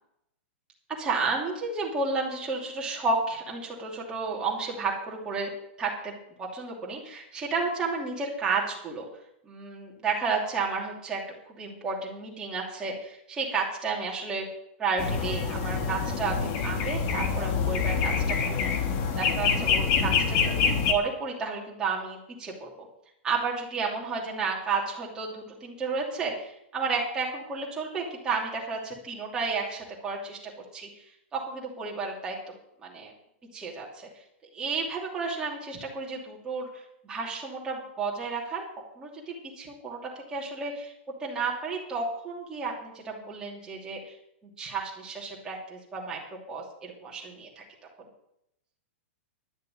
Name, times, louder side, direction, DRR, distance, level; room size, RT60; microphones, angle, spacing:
voice 1, 1.0-5.5 5.8-6.1 6.4-9.0 9.4-14.5 14.8-18.7 19.2-22.9 23.2-31.0 31.3-32.4 32.8-33.1 33.5-34.1 34.5-38.6 39.0-40.9 41.2-44.2 44.6-46.2 46.5-47.6, right 4 dB, 10° right, -3 dB, 2.8 m, -32 dB
sound 1, 15.0-20.9, left 6 dB, 30° left, 1.3 m, -26 dB
11.5 x 6.5 x 9.2 m, 0.79 s
supercardioid pair, 170°, 7 cm